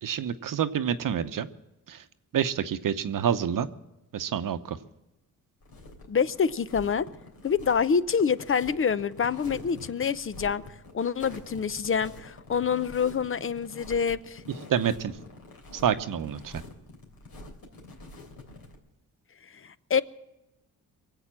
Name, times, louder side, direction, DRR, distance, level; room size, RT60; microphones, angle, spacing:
voice 1, 0.0-1.5 1.9-2.0 2.3-3.7 4.1-4.8 14.7-15.1 15.7-16.6, right 8 dB, 60° right, 11 dB, 0.9 m, -28 dB
sound 1, 5.6-18.8, left 2 dB, 70° left, 3.4 m, -46 dB
voice 2, 6.1-7.0 7.4-10.6 10.9-14.4 19.6-20.0, left 6 dB, 35° left, 16 dB, 0.7 m, -26 dB
23.0 x 8.1 x 7.5 m, 0.96 s
cardioid pair, 90°, 37 cm